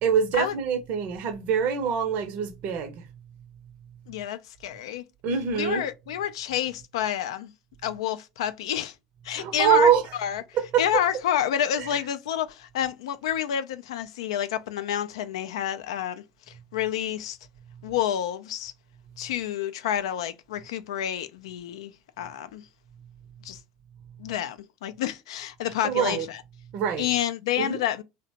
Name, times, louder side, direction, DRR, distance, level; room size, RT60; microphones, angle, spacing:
voice 1, 0.0-3.0 5.2-5.8 9.3-10.0 10.5-10.8 11.8-11.9 25.8-26.3 26.7-27.1 27.6-27.8, right 7 dB, 55° right, 0.6 m, -24 dB
voice 2, 4.1-5.0 5.5-7.5 7.8-8.9 9.2-9.9 10.2-10.4 10.8-17.4 17.8-18.7 19.2-22.6 23.4-23.6 24.2-26.4 27.0-28.0, left 10 dB, 85° left, 0.3 m, -29 dB
2.8 x 2.1 x 2.8 m
hypercardioid pair, 90°, 3 cm